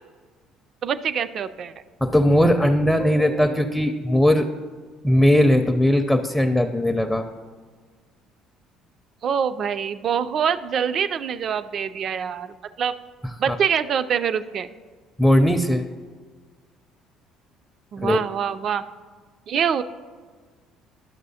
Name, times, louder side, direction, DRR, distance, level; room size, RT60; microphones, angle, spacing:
voice 1, 0.8-1.7 9.2-12.9 13.4-14.7 17.9-18.8 19.5-19.8, right 7 dB, 55° right, 12 dB, 0.3 m, -25 dB
voice 2, 2.0-4.5 5.0-7.2 13.5-13.6 15.2-15.8 18.0-18.2, left 1 dB, 5° left, 4 dB, 0.5 m, -19 dB
11.5 x 6.1 x 2.7 m, 1.5 s
hypercardioid pair, 65°, 0 cm